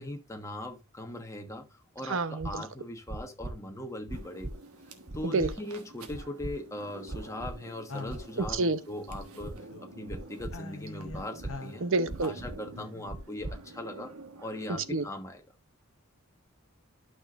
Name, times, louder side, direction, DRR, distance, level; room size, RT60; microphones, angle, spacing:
voice 1, 0.0-1.7 1.9-4.5 5.1-11.8 12.2-14.1 14.4-15.4, left 1 dB, 15° left, 1.3 m, -40 dB
voice 2, 2.0-2.6 5.3-5.5 8.5-8.8 11.8-12.3 14.9-15.0, right 3 dB, 65° right, 0.8 m, -28 dB
sound 1, 2.4-2.5 3.1-3.5 4.1-4.5 5.1-5.5 6.1-6.5 7.1-7.5 8.1-8.5 9.1-9.5 10.1-10.5 11.1-11.5 12.1-12.5 13.1-13.5, right 2 dB, 20° right, 0.7 m, -38 dB
sound 2, 4.1-15.1, right 3 dB, 85° right, 1.4 m, -50 dB
sound 3, 7.9-10.1 10.4-13.0, left 3 dB, 65° left, 1.0 m, -45 dB
11.5 x 6.1 x 2.5 m
head